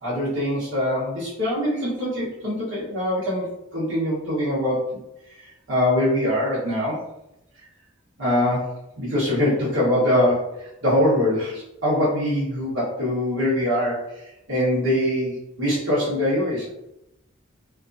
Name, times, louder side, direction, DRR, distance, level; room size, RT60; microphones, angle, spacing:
voice 1, 0.0-3.5 3.7-5.0 5.4-7.1 8.2-16.7, left 1 dB, 65° right, -8 dB, 1.2 m, -23 dB
2.8 x 2.4 x 2.6 m, 0.86 s
head